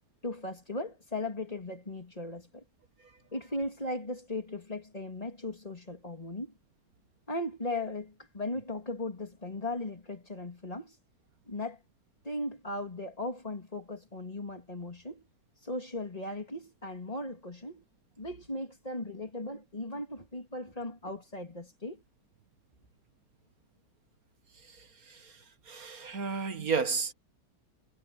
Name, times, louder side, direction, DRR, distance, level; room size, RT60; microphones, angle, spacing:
voice 1, 0.2-2.6 3.3-6.5 7.3-11.0 11.5-11.8 12.2-15.2 15.6-17.8 18.2-22.0, left 2 dB, 20° left, 3.1 m, -37 dB
voice 2, 24.6-27.1, right 5 dB, 55° right, 2.2 m, -33 dB
omnidirectional pair, 1.8 m